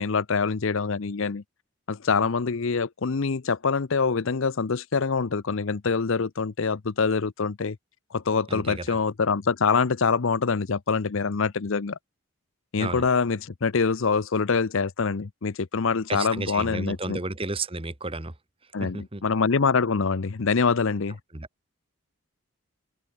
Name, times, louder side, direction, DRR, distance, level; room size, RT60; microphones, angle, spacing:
voice 1, 0.0-1.4 1.9-7.8 8.1-12.0 12.7-17.2 18.7-21.2, left 5 dB, 60° left, 0.6 m, -25 dB
voice 2, 8.5-8.8 12.8-13.0 16.1-18.3 18.8-19.2 21.3-21.5, right 3 dB, 25° right, 1.4 m, -32 dB
open air
head